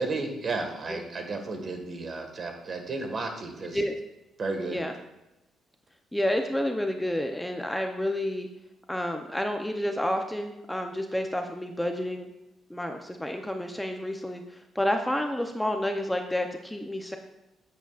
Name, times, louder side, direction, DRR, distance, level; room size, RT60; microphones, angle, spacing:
voice 1, 0.0-3.8 4.4-4.8, right 3 dB, 45° right, 4 dB, 1.7 m, -33 dB
voice 2, 6.1-8.5 8.9-12.3 12.7-17.2, left 1 dB, 5° left, 4 dB, 0.7 m, -30 dB
10.5 x 8.3 x 2.5 m, 0.94 s
cardioid pair, 90°, 0 cm